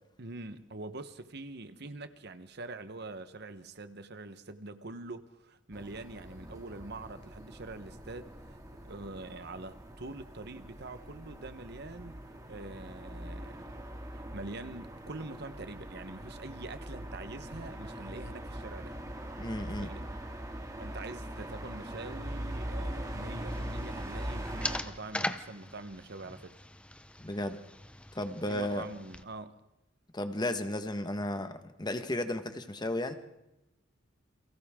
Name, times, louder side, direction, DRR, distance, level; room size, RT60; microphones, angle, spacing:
voice 1, 0.2-8.6 8.8-13.7 14.1-19.0 19.6-20.0 20.8-26.6 28.5-29.5, right 2 dB, 55° right, 1.2 m, -44 dB
sound 1, 5.7-24.8, right 1 dB, 20° right, 2.4 m, -42 dB
voice 2, 19.4-19.9 27.2-27.6 28.1-28.8 30.1-33.1, left 1 dB, 20° left, 1.5 m, -34 dB
sound 2, 23.5-29.2, left 1 dB, 5° left, 0.8 m, -41 dB
30.0 x 23.5 x 3.8 m
head